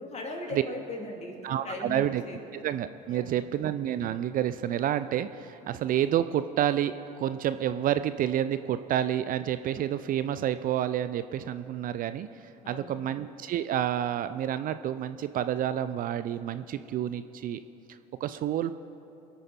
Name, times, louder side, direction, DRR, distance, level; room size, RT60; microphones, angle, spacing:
voice 1, 0.0-2.4 3.1-3.4 12.6-13.1, left 1 dB, 35° left, 0 dB, 3.1 m, -39 dB
voice 2, 1.4-2.2 2.5-12.3 12.7-17.6 17.9-18.7, right 11 dB, 45° right, 12 dB, 0.5 m, -29 dB
24.5 x 8.8 x 4.3 m, 2.9 s
hypercardioid pair, 70°, 20 cm